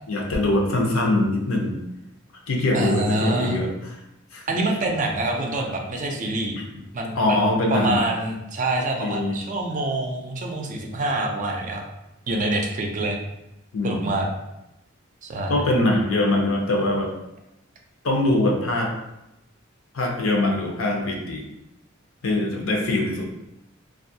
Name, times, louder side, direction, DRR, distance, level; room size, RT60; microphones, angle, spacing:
voice 1, 0.1-1.8 2.5-3.7 4.3-4.4 6.6-6.8 7.1-8.0 9.0-9.4 13.7-14.1 15.5-17.1 18.0-18.9 19.9-21.4 22.2-23.3, left 2 dB, 80° left, 0 dB, 0.6 m, -23 dB
voice 2, 2.7-3.6 4.5-6.6 6.9-7.4 7.7-11.8 12.3-13.2 13.8-14.3 15.2-15.5, right 2 dB, 40° right, 2 dB, 0.4 m, -26 dB
2.6 x 2.3 x 2.6 m, 0.90 s
head